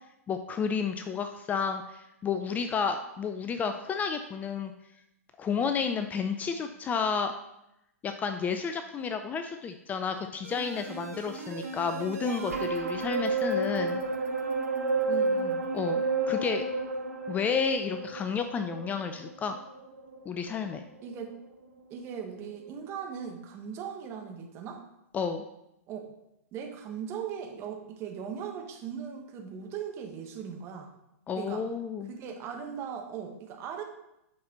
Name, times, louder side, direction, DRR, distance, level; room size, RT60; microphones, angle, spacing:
voice 1, 0.3-4.7 5.4-7.3 8.0-14.1 15.7-16.6 17.3-19.6 20.3-20.8 25.1-25.5 31.3-32.1, left 6 dB, 20° left, 7 dB, 0.5 m, -31 dB
sound 1, 10.4-20.8 21.2-21.3, right 3 dB, 75° right, 1.4 m, -31 dB
voice 2, 15.1-15.6 21.0-21.3 21.9-24.8 25.9-26.1 26.5-30.9 31.4-31.6 32.1-33.8, right 7 dB, 30° right, 3 dB, 1.4 m, -39 dB
8.5 x 5.9 x 3.9 m, 0.85 s
figure-of-eight pair, 110°, 8 cm